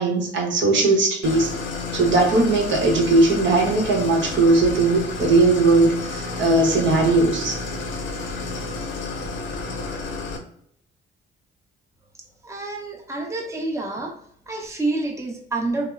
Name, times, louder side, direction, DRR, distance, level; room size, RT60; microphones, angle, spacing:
voice 1, 0.0-1.5 1.9-7.6, right 2 dB, 70° right, -1 dB, 0.8 m, -19 dB
Idling, 1.2-10.4, left 3 dB, 70° left, 0.6 m, -31 dB
voice 2, 12.1-14.1 14.5-15.9, right 2 dB, 15° right, 1 dB, 0.6 m, -28 dB
3.0 x 2.0 x 2.3 m, 0.67 s
cardioid pair, 90°, 20 cm